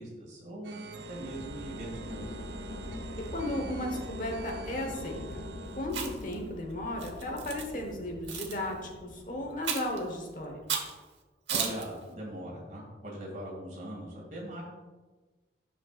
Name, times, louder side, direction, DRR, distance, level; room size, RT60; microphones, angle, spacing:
voice 1, 0.0-2.3 11.5-14.6, right 1 dB, 45° right, -3 dB, 2.3 m, -41 dB
sound 1, 0.6-5.8, right 4 dB, 65° right, 0.5 m, -45 dB
sound 2, 1.0-11.0, left 1 dB, 75° left, 0.6 m, -43 dB
voice 2, 3.2-5.4 5.7-10.6, left 1 dB, 50° left, 2 dB, 1.1 m, -35 dB
Chewing mastication, 5.9-6.3 7.0-7.6 8.3-8.6 9.6-10.0 10.7-10.9 11.5-11.8, right 6 dB, 85° right, 1.0 m, -33 dB
9.7 x 6.5 x 2.4 m, 1.3 s
head